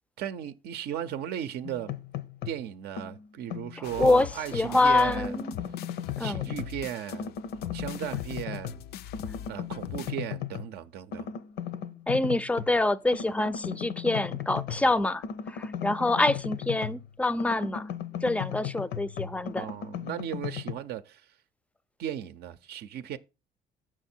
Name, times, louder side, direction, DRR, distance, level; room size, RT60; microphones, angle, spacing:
voice 1, 0.2-1.9 2.5-5.4 6.2-7.3 7.7-8.8 9.5-11.3 19.5-21.3 22.0-23.2, right 10 dB, 75° right, 0.6 m, -36 dB
sound 1, 1.6-2.6 3.0-4.7 5.1-6.8 7.1-8.9 9.1-10.7 11.1-12.7 13.1-17.1 17.4-20.7, left 9 dB, 90° left, 0.8 m, -36 dB
sound 2, 3.8-10.1, left 11 dB, 70° left, 0.4 m, -42 dB
voice 2, 3.8-5.5 6.2-6.5 12.1-17.9 18.2-19.7, left 2 dB, 10° left, 0.4 m, -26 dB
7.3 x 6.1 x 4.3 m
cardioid pair, 110°, 17 cm